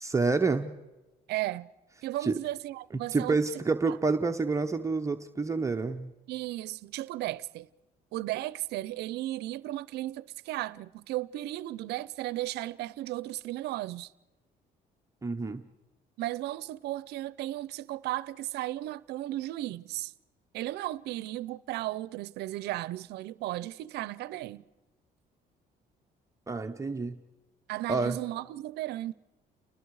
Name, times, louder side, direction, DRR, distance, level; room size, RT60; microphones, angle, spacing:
voice 1, 0.0-0.7 2.2-2.3 3.1-6.1 15.2-15.6 26.5-27.2 27.9-28.2, right 4 dB, 20° right, 0.8 m, -28 dB
voice 2, 1.3-1.7 2.0-3.4 6.3-7.7 8.1-14.1 16.2-20.1 20.5-24.6 27.7-29.1, right 16 dB, 80° right, 0.6 m, -35 dB
29.5 x 20.0 x 4.8 m
cardioid pair, 110°, 17 cm